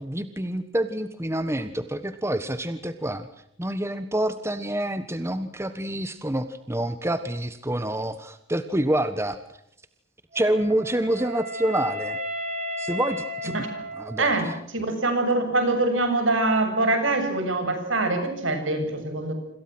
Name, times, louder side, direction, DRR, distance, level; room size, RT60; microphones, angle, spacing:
voice 1, 0.0-3.3 3.6-9.4 10.3-12.2 12.8-13.7 14.0-14.5, right 1 dB, 15° right, 10 dB, 1.3 m, -27 dB
Wind instrument woodwind instrument, 10.3-14.5, equal, 40° right, 7.6 m, -34 dB
voice 2, 14.2-19.3, right 2 dB, 70° right, 8 dB, 7.4 m, -24 dB
28.5 x 26.5 x 6.2 m, 0.72 s
head